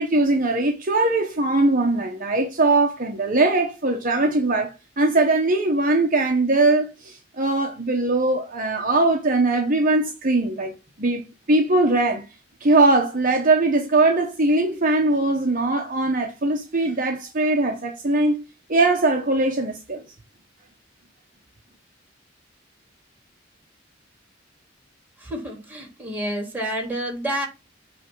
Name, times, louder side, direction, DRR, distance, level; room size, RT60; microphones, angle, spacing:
voice 1, 0.0-12.3 12.6-18.4 18.7-20.0, right 2 dB, 45° right, 1.0 m, -21 dB
voice 2, 25.2-27.5, right 1 dB, 10° right, 3.2 m, -29 dB
8.4 x 3.4 x 6.1 m
head